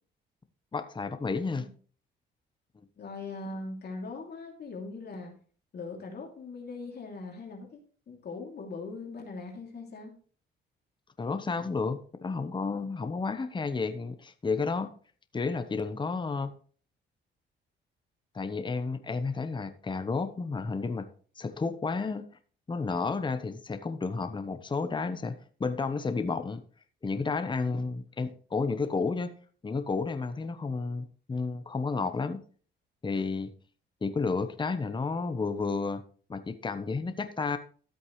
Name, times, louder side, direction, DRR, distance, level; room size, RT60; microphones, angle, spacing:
voice 1, 0.7-1.6 11.2-14.9 15.3-16.5 18.3-21.1 21.4-22.2 22.7-26.6 27.0-29.3 29.6-32.4 33.0-33.5 34.0-36.0 36.3-37.6, left 4 dB, 25° left, 9 dB, 1.0 m, -31 dB
voice 2, 3.0-5.3 5.7-7.8 8.1-10.1, left 3 dB, 55° left, 1 dB, 2.9 m, -40 dB
13.0 x 8.2 x 3.2 m, 0.43 s
cardioid pair, 90°, 20 cm